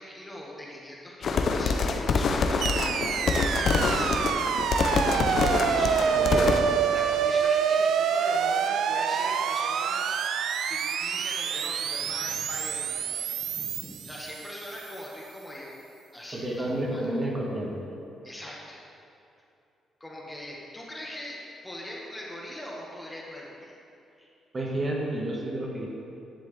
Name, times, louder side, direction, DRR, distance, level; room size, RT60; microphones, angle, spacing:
voice 1, 0.0-3.2 3.6-4.3 5.1-6.6 6.9-10.2 10.6-15.7 16.1-17.1 18.2-18.8 20.0-23.7 24.2-24.3, left 1 dB, 15° left, -3 dB, 1.5 m, -41 dB
sound 1, 1.2-6.6, left 4 dB, 55° left, 0.6 m, -26 dB
sound 2, 2.6-14.9, right 7 dB, 75° right, 0.4 m, -27 dB
voice 2, 6.1-6.7 16.3-17.8 24.5-25.9, right 1 dB, 30° right, -2 dB, 1.6 m, -30 dB
10.5 x 7.4 x 3.4 m, 2.6 s
cardioid pair, 90°, 0 cm